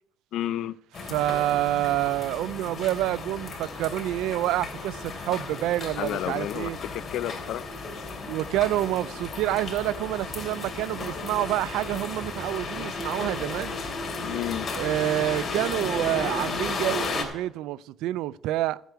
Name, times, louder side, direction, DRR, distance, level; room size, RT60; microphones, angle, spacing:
voice 1, 0.3-0.8 6.0-7.7 14.2-14.7, left 12 dB, 70° left, 0.4 m, -31 dB
sound 1, 0.9-17.2, left 3 dB, 35° left, 3.1 m, -34 dB
voice 2, 1.1-6.8 8.3-13.8 14.7-18.8, right 14 dB, 85° right, 0.3 m, -28 dB
14.5 x 8.1 x 4.6 m
cardioid pair, 115°, 0 cm